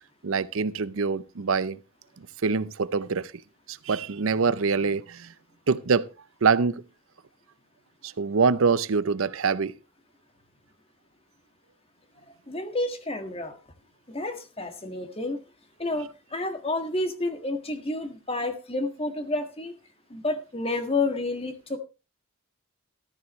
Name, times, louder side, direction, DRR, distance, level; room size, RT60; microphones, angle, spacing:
voice 1, 0.2-1.8 2.4-3.3 3.7-5.3 5.7-6.1 6.4-6.8 8.0-9.7, right 5 dB, 70° right, 0.6 m, -24 dB
voice 2, 12.3-13.6 14.1-15.4 15.8-19.8 20.1-21.8, left 2 dB, 25° left, 1.7 m, -30 dB
14.0 x 13.0 x 3.1 m
head